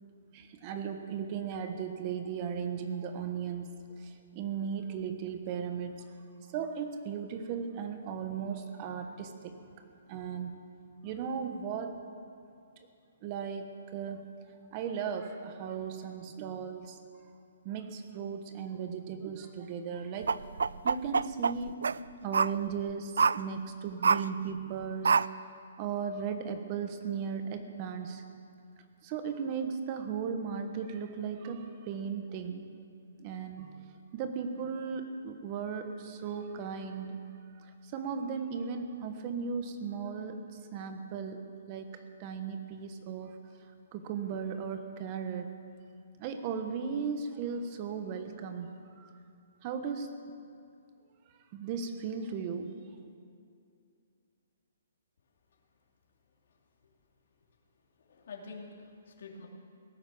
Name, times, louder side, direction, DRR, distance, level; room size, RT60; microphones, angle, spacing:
voice 1, 0.3-6.1 6.5-10.6 11.0-12.0 13.2-14.3 14.7-17.0 17.6-20.4 20.8-21.8 22.2-28.2 29.0-32.7 33.2-37.2 37.6-43.4 43.9-45.5 46.2-49.1 49.6-50.1 51.5-52.7, right 6 dB, 25° right, 7 dB, 1.2 m, -37 dB
sound 1, 20.2-22.0 22.3-22.5 23.2-23.4 24.0-24.3 25.0-25.3, right 5 dB, 90° right, 0.3 m, -25 dB
voice 2, 58.0-59.5, left 4 dB, 60° left, -1 dB, 3.0 m, -47 dB
17.5 x 10.5 x 7.1 m, 2.5 s
hypercardioid pair, 165°, 0 cm